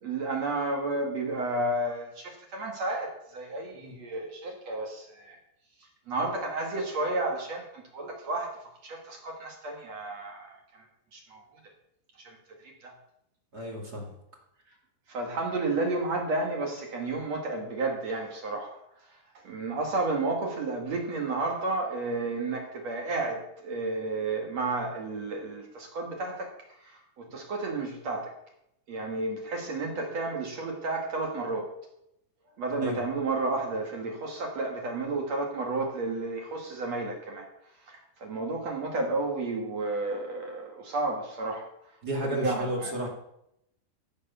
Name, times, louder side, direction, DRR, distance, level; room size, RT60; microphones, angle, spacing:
voice 1, 0.0-5.4 6.1-8.5 8.8-10.5 11.1-11.4 12.2-12.4 12.8-12.9 15.1-18.7 19.4-26.5 27.2-28.3 28.9-31.7 32.6-37.5 37.9-41.7 42.2-43.1, right 2 dB, 45° right, 1 dB, 2.6 m, -32 dB
voice 2, 13.5-14.1 32.8-33.0 42.0-43.1, equal, 30° right, 0 dB, 2.0 m, -32 dB
16.0 x 7.1 x 6.9 m, 0.78 s
omnidirectional pair, 5.1 m